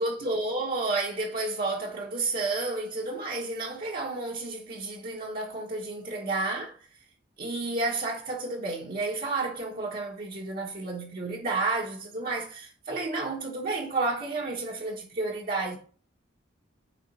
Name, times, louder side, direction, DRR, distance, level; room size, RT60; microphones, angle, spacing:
voice 1, 0.0-6.8 7.4-15.8, right 3 dB, 50° right, 1.3 m, -31 dB
9.2 x 3.6 x 5.5 m
head